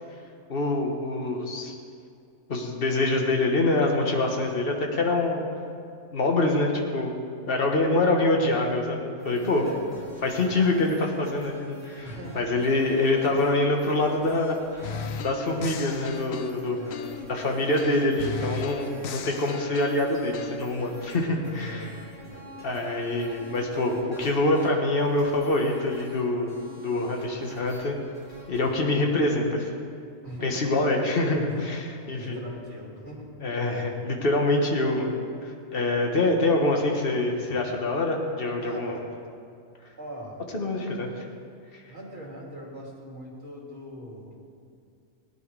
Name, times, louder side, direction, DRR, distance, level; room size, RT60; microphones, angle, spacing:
voice 1, 0.5-1.7 2.5-5.4 6.1-7.1 7.5-9.6 10.2-12.1 12.3-14.6 15.2-16.8 17.3-21.9 22.6-26.5 26.8-28.0 28.5-29.7 30.4-31.8 32.1-32.4 33.4-39.0 40.5-41.2 41.7-41.8, left 2 dB, 45° left, 1 dB, 1.6 m, -25 dB
sound 1, 9.2-28.8, left 1 dB, 10° left, 3.5 m, -48 dB
voice 2, 9.2-10.6 12.0-12.5 16.7-17.1 21.4-22.8 30.2-30.8 31.5-31.8 32.2-33.3 38.6-39.0 40.0-40.4 41.9-44.4, right 1 dB, 60° right, -3 dB, 2.8 m, -41 dB
sound 2, 14.8-17.4 17.8-20.6, left 6 dB, 85° left, 1.1 m, -36 dB
18.0 x 10.5 x 4.8 m, 2.4 s
omnidirectional pair, 1.4 m